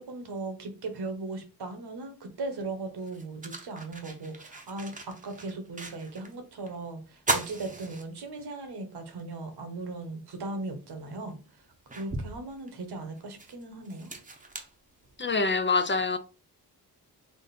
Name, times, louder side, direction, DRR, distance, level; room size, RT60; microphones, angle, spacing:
voice 1, 0.0-11.4 11.9-14.1, right 2 dB, 75° right, 1.3 m, -38 dB
sound 1, 2.4-2.5 3.0-6.4 6.7-6.8 7.2-8.6 9.1-9.2 10.6-10.7 11.3-15.5, right 2 dB, 20° right, 0.8 m, -37 dB
voice 2, 15.2-16.2, left 4 dB, 30° left, 0.5 m, -25 dB
3.8 x 2.5 x 4.2 m
cardioid pair, 80°, 40 cm